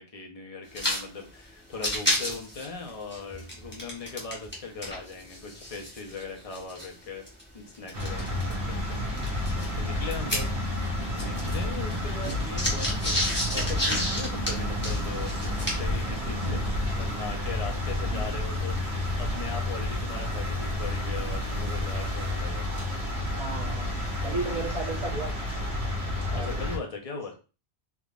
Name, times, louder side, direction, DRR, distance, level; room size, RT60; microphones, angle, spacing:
voice 1, 0.0-7.2 7.5-8.4 8.7-9.0 9.8-10.5 11.1-13.2 13.5-15.4 15.8-22.7 26.3-27.4, left 4 dB, 40° left, 1 dB, 0.8 m, -39 dB
sound 1, 0.7-1.0 1.3-1.4 1.7-4.6 4.8-8.5 9.2-10.9 11.1-16.0, equal, 10° left, 0.9 m, -31 dB
sound 2, 7.9-26.8, left 1 dB, 85° right, 1.4 m, -31 dB
sound 3, 11.4-22.3, equal, 50° right, 0.7 m, -39 dB
voice 2, 23.4-25.3 26.3-26.6, right 3 dB, 35° right, -1 dB, 1.1 m, -34 dB
3.6 x 3.0 x 2.4 m, 0.33 s
omnidirectional pair, 1.1 m